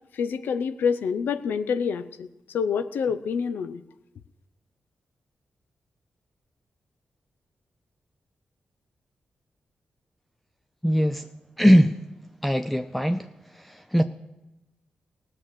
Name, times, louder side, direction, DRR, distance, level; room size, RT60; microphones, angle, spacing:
voice 1, 0.1-2.3 2.5-3.8, left 6 dB, 90° left, 11 dB, 0.6 m, -27 dB
voice 2, 10.8-11.3 11.6-12.0 12.4-13.3 13.5-14.0, equal, 5° left, 8 dB, 0.5 m, -20 dB
16.5 x 6.3 x 7.5 m, 1.0 s
cardioid pair, 70°, 3 cm